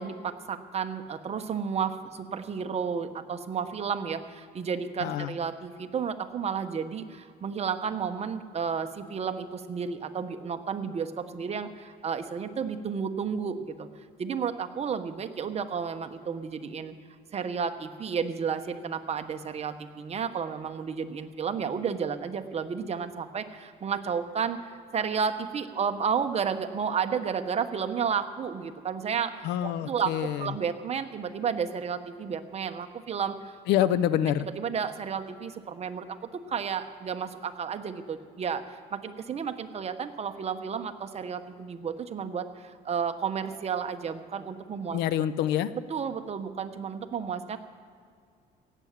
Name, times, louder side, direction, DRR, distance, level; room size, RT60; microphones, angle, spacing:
voice 1, 0.0-13.9 14.2-16.9 17.3-33.6 34.4-36.2 36.5-45.0 45.9-47.6, right 6 dB, 40° right, 8 dB, 1.1 m, -32 dB
voice 2, 5.0-5.3 29.4-30.5 33.7-34.5 44.9-45.7, left 11 dB, 90° left, 15 dB, 0.7 m, -26 dB
17.0 x 9.2 x 7.5 m, 2.3 s
cardioid pair, 110°, 17 cm